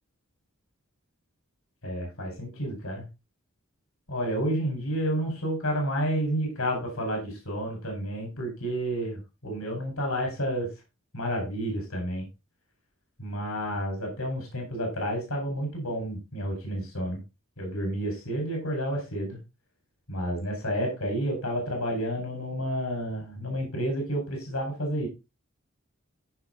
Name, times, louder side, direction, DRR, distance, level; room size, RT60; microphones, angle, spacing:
voice 1, 1.8-3.0 4.1-10.7 11.1-12.3 13.2-17.2 17.6-19.4 20.1-25.1, equal, 90° left, 1 dB, 4.7 m, -30 dB
14.0 x 5.1 x 3.9 m, 0.26 s
head